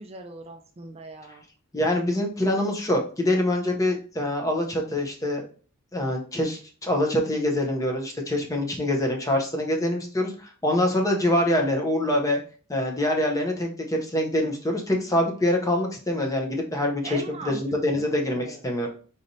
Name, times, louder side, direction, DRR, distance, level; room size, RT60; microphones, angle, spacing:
voice 1, 0.0-1.4 17.0-17.6 17.9-18.7, right 3 dB, 30° right, 4 dB, 0.4 m, -40 dB
voice 2, 1.7-5.5 5.9-12.4 12.7-18.9, left 1 dB, 15° left, 2 dB, 0.7 m, -25 dB
4.0 x 3.2 x 2.7 m, 0.39 s
head